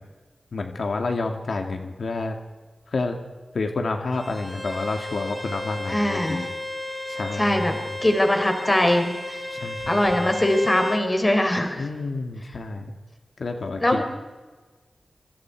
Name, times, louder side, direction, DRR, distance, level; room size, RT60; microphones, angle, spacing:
voice 1, 0.5-2.4 2.9-3.2 3.5-6.6 7.1-7.9 9.5-10.3 11.8-12.9 13.4-14.0, left 3 dB, 70° left, 4 dB, 2.2 m, -29 dB
Bowed string instrument, 4.1-11.1, left 1 dB, 5° right, 3.0 m, -33 dB
voice 2, 5.9-6.4 7.4-9.4 9.9-11.8 13.8-14.0, left 1 dB, 20° left, 5 dB, 3.7 m, -22 dB
27.0 x 25.0 x 4.8 m, 1.3 s
wide cardioid pair, 105°, 0 cm